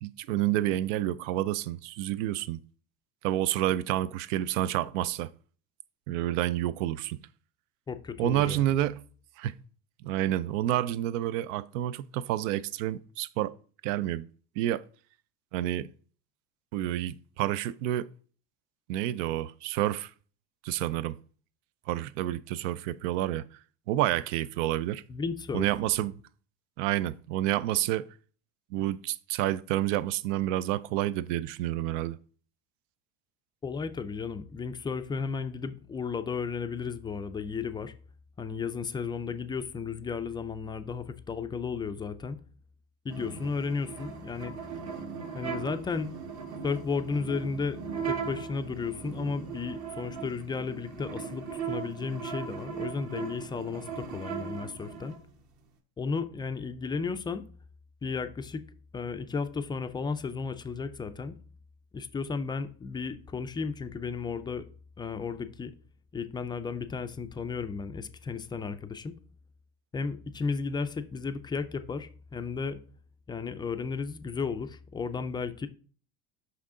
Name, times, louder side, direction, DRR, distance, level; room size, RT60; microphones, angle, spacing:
voice 1, 0.0-2.6 3.2-5.3 6.1-7.2 8.2-9.0 9.4-9.5 10.0-13.5 13.8-14.3 14.6-14.8 15.5-15.9 16.7-18.1 18.9-20.1 20.6-21.2 21.9-23.4 23.9-25.0 25.5-26.2 26.8-28.0 28.7-32.2, right 13 dB, 80° right, 0.5 m, -29 dB
voice 2, 7.9-8.7 25.1-25.7 33.6-37.9 38.4-42.4 43.0-44.5 45.3-46.1 46.6-47.8 48.0-55.2 56.0-57.5 58.0-58.6 58.9-61.4 61.9-64.7 65.0-65.7 66.1-69.1 69.9-72.8 73.3-75.7, left 5 dB, 15° left, 0.3 m, -34 dB
sound 1, 43.1-55.2, right 6 dB, 50° right, 1.2 m, -38 dB
6.0 x 5.6 x 3.7 m
supercardioid pair, 120°, 37 cm